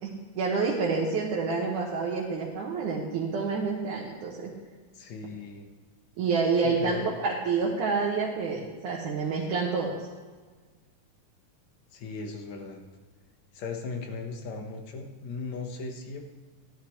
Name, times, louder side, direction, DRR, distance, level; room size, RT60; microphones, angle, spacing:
voice 1, 0.0-4.5 6.2-10.0, right 4 dB, 70° right, -4 dB, 2.7 m, -28 dB
voice 2, 4.9-5.7 6.6-7.1 11.9-12.8 13.5-16.2, left 4 dB, 65° left, 3 dB, 2.4 m, -37 dB
15.5 x 11.5 x 3.2 m, 1.4 s
omnidirectional pair, 3.7 m